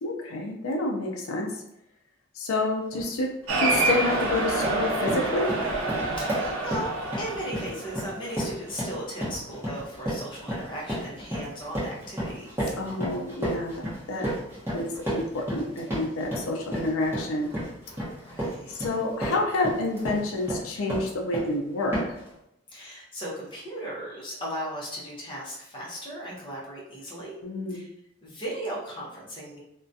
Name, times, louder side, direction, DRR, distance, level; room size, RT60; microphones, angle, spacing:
voice 1, 0.0-1.6 2.3-5.5 12.8-14.3 14.7-17.5 18.7-22.0 27.4-27.8, left 2 dB, 75° left, 1 dB, 0.4 m, -29 dB
sound 1, 2.9-3.1 3.5-3.9 4.3-21.6 21.9-22.3, equal, 10° right, 0.8 m, -33 dB
Cheering, 3.5-8.2, right 2 dB, 80° right, 0.5 m, -27 dB
voice 2, 6.2-6.9 7.2-12.8 18.3-18.7 22.7-27.3 27.7-27.8 28.2-29.6, equal, 25° left, -6 dB, 0.6 m, -37 dB
2.3 x 2.1 x 2.6 m, 0.83 s
head